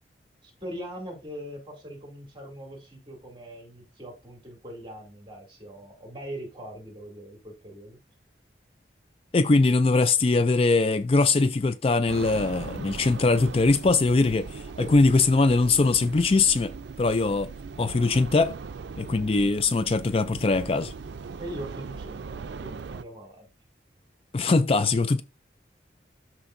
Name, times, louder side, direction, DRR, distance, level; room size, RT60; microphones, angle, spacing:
voice 1, 0.4-8.0 14.8-15.0 21.4-23.5, equal, 30° right, 2.6 m, -41 dB
voice 2, 9.3-16.7 17.0-17.5 17.8-18.6 19.0-20.9 24.3-25.2, left 3 dB, 35° left, 0.4 m, -22 dB
sound 1, 12.1-23.0, right 4 dB, 85° right, 0.4 m, -39 dB
13.0 x 4.4 x 2.6 m
head